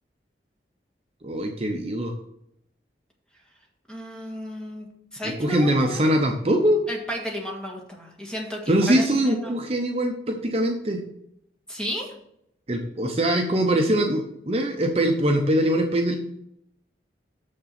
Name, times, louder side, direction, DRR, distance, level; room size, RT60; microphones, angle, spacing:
voice 1, 1.2-2.1 5.4-6.8 8.7-11.0 12.7-16.2, right 1 dB, 35° right, 3 dB, 0.7 m, -22 dB
voice 2, 3.9-4.9 5.1-6.0 6.9-9.5 11.7-12.1, equal, 5° left, -1 dB, 1.6 m, -33 dB
6.8 x 6.5 x 5.8 m, 0.76 s
head